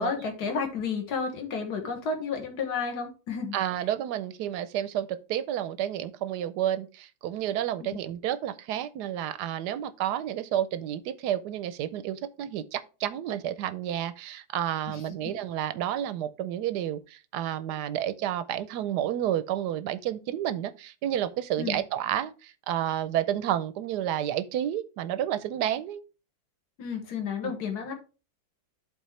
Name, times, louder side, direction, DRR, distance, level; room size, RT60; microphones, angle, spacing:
voice 1, 0.0-3.6 7.8-8.0 14.9-15.3 21.6-21.8 26.8-27.9, left 5 dB, 55° left, 1.9 m, -32 dB
voice 2, 3.5-26.0 27.4-27.6, right 11 dB, 70° right, 1.0 m, -30 dB
11.5 x 4.1 x 3.2 m
omnidirectional pair, 2.1 m